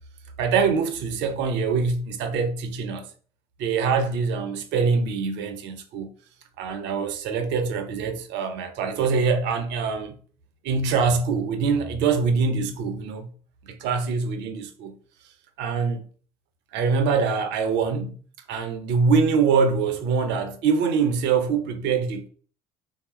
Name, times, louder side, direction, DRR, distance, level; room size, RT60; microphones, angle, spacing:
voice 1, 0.4-3.1 3.6-6.1 6.6-10.1 10.6-13.3 13.6-14.9 15.6-16.0 16.7-18.2 18.5-22.3, right 5 dB, 60° right, 0.8 m, -24 dB
3.5 x 2.8 x 4.3 m
figure-of-eight pair, 55°, 21 cm